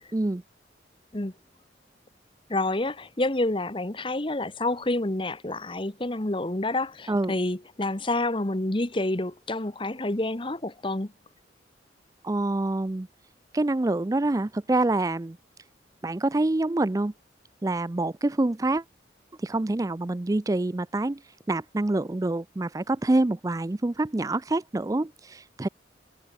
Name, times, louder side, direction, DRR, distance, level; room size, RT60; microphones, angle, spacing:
voice 1, 0.1-0.4 7.1-7.3 12.2-13.1 13.5-15.4 16.0-17.1 17.6-18.8 19.4-21.2 21.5-25.7, right 2 dB, 20° right, 0.4 m, -26 dB
voice 2, 2.5-11.1, left 2 dB, 30° left, 1.2 m, -28 dB
head